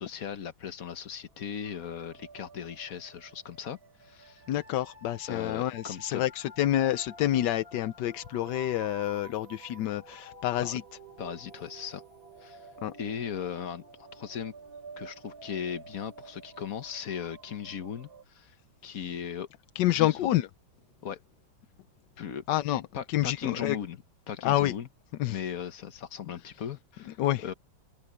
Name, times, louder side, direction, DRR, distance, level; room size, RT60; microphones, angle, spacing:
voice 1, 0.0-4.4 5.3-6.2 10.6-10.8 11.2-12.0 12.4-12.7 13.0-13.8 14.1-14.5 15.0-18.6 18.8-19.5 19.9-20.3 21.0-21.2 22.2-22.4 22.9-24.9 25.3-27.5, left 8 dB, 50° left, 1.2 m, -38 dB
sound 1, 1.5-18.2, right 3 dB, 50° right, 4.1 m, -50 dB
voice 2, 4.5-10.8 12.8-12.9 19.8-20.5 22.5-22.8 23.1-23.8 24.4-24.7 25.2-25.4 27.2-27.4, left 13 dB, 70° left, 1.2 m, -28 dB
omnidirectional pair, 2.2 m